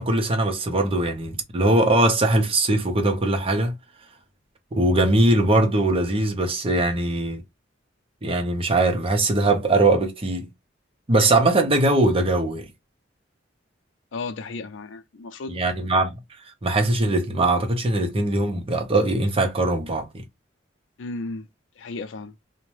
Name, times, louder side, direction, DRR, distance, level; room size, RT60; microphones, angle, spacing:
voice 1, 0.0-3.7 4.7-7.4 8.2-10.5 11.1-12.7 15.5-16.2 16.6-20.2, right 2 dB, 30° right, 0.7 m, -21 dB
voice 2, 14.1-15.6 21.0-21.5 21.8-22.3, left 3 dB, 70° left, 0.5 m, -34 dB
2.6 x 2.1 x 3.1 m
head